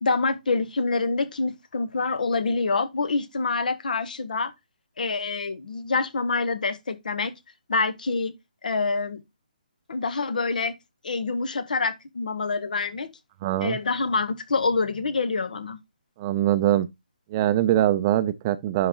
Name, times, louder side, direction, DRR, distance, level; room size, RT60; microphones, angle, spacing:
voice 1, 0.0-4.5 5.0-7.3 7.7-8.3 8.6-9.2 9.9-10.7 11.0-13.1 13.6-15.8, left 4 dB, 65° left, 1.0 m, -26 dB
voice 2, 13.4-13.8 16.2-16.9 17.3-18.9, right 12 dB, 25° right, 0.5 m, -22 dB
10.5 x 3.8 x 2.9 m
hypercardioid pair, 150°, 5 cm